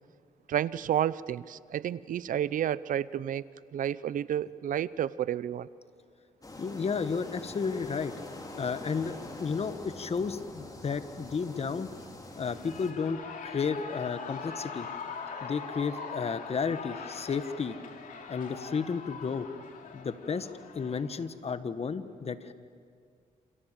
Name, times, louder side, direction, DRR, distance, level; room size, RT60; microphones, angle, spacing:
voice 1, 0.5-3.4 3.7-5.7, right 10 dB, 75° right, 18 dB, 0.7 m, -30 dB
sound 1, 6.4-12.9, left 2 dB, 25° left, 4.8 m, -44 dB
voice 2, 6.6-8.1 8.6-11.9 12.3-14.9 15.4-17.8 18.3-19.5 19.9-20.5 20.7-22.5, left 5 dB, 45° left, 11 dB, 1.5 m, -32 dB
Shout / Cheering, 12.3-21.3, left 5 dB, 75° left, 3.2 m, -42 dB
28.5 x 27.5 x 7.6 m, 2.1 s
cardioid pair, 75°, 14 cm